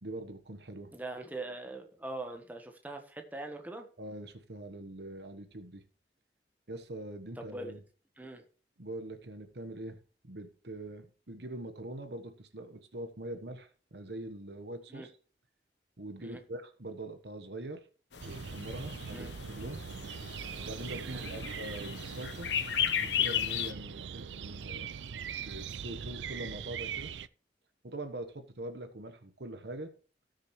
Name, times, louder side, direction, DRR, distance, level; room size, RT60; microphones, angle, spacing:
voice 1, 0.0-0.9 4.0-5.8 6.7-7.8 8.8-10.0 10.2-15.1 16.0-17.9 18.2-19.8 20.6-22.5 23.0-24.9 25.4-27.1 27.8-29.9, right 1 dB, 70° right, 9 dB, 1.3 m, -43 dB
voice 2, 0.9-3.9 7.4-7.7 8.2-8.4 14.9-15.1 16.2-16.4 19.1-19.3 21.1-21.2, right 2 dB, 10° right, 4 dB, 1.2 m, -42 dB
sound 1, 18.1-23.7, left 9 dB, 85° left, 1.1 m, -35 dB
sound 2, 18.2-27.3, right 7 dB, 90° right, 0.5 m, -41 dB
17.5 x 6.5 x 3.2 m, 0.39 s
head